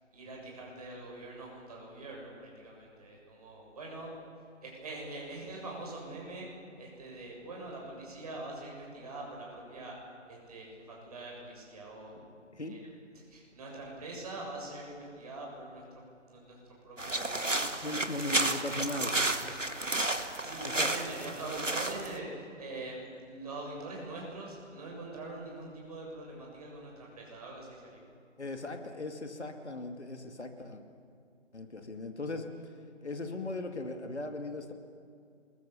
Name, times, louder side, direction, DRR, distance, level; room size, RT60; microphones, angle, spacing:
voice 1, 0.1-4.1 4.6-6.5 6.8-9.9 10.3-12.2 12.7-12.8 13.1-15.8 16.3-17.9 20.4-28.1, right 2 dB, 30° right, -2 dB, 7.4 m, -43 dB
sound 1, 17.0-22.2, right 2 dB, 90° right, 2.0 m, -32 dB
voice 2, 17.6-19.2 20.6-20.9 28.4-30.8 31.5-32.5 33.0-34.7, left 2 dB, 65° left, 6 dB, 2.5 m, -38 dB
26.5 x 22.0 x 7.0 m, 2.4 s
figure-of-eight pair, 155°, 37 cm